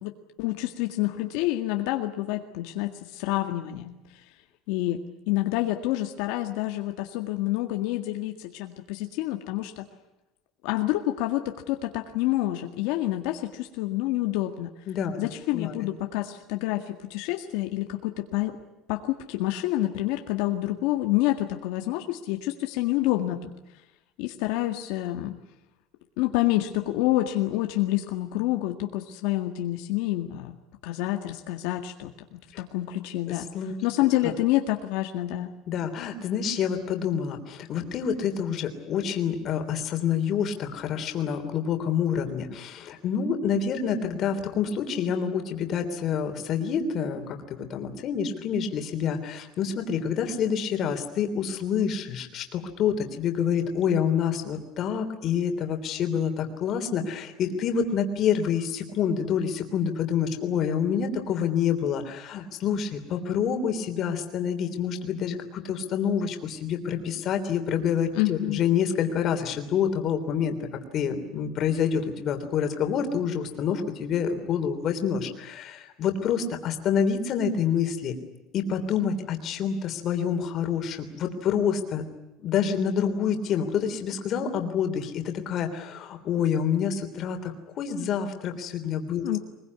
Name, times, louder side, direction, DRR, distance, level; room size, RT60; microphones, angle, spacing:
voice 1, 0.0-4.3 4.7-9.9 10.6-14.7 15.2-18.6 18.9-23.5 24.2-25.3 26.2-30.6 30.8-33.5 33.8-35.5 68.1-68.6 89.2-89.4, left 15 dB, 70° left, 4 dB, 1.9 m, -28 dB
voice 2, 14.9-15.2 15.5-15.8 32.5-32.6 33.3-33.7 34.2-34.3 35.7-70.6 70.9-78.1 78.5-82.0 82.4-89.4, left 7 dB, 35° left, 6 dB, 3.3 m, -27 dB
23.0 x 22.0 x 9.6 m, 0.96 s
cardioid pair, 175°, 0 cm